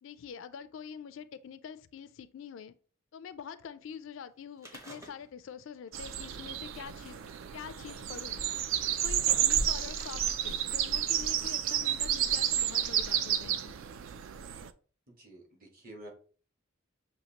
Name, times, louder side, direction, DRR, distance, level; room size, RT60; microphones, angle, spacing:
voice 1, 0.0-2.7 3.1-7.2 7.5-8.4 9.0-13.7, left 7 dB, 65° left, 0.3 m, -45 dB
sound 1, 4.6-5.6 5.9-6.0 6.9-7.0 7.9-8.0 8.7-10.1 10.9-11.0, equal, 15° right, 0.7 m, -50 dB
sound 2, 5.9-14.7, right 10 dB, 65° right, 0.3 m, -31 dB
sound 3, 6.6-13.5, equal, 85° right, 1.3 m, -43 dB
voice 2, 15.1-16.1, right 1 dB, 45° right, 1.3 m, -49 dB
6.4 x 2.7 x 2.8 m
head